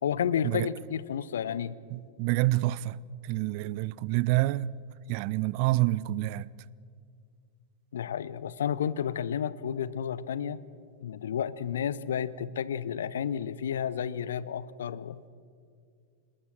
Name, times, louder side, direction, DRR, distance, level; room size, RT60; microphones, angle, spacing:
voice 1, 0.0-1.7 7.9-10.6 11.0-15.2, left 8 dB, 65° left, 0.9 m, -31 dB
voice 2, 1.9-3.0 3.2-4.7 5.1-6.5, right 17 dB, 45° right, 0.6 m, -27 dB
26.5 x 21.0 x 7.6 m
figure-of-eight pair, 90°, 0 cm